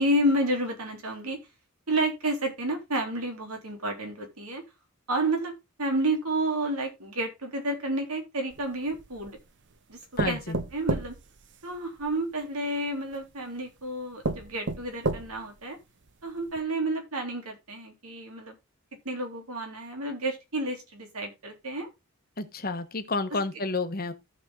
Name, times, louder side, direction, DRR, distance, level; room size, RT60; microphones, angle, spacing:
voice 1, 0.0-1.4 1.9-4.6 5.1-5.5 5.8-9.4 9.9-10.0 10.2-11.2 11.6-15.8 16.2-18.5 19.1-21.9, right 1 dB, 85° right, 3.5 m, -30 dB
sound 1, 8.5-9.4 10.2-12.1 13.1-13.2 13.8-13.9 14.2-15.6 16.1-16.2 16.5-16.6, right 3 dB, 55° right, 0.9 m, -32 dB
voice 2, 10.2-10.6 22.4-24.1, left 3 dB, 45° left, 1.3 m, -30 dB
14.5 x 5.5 x 3.8 m
head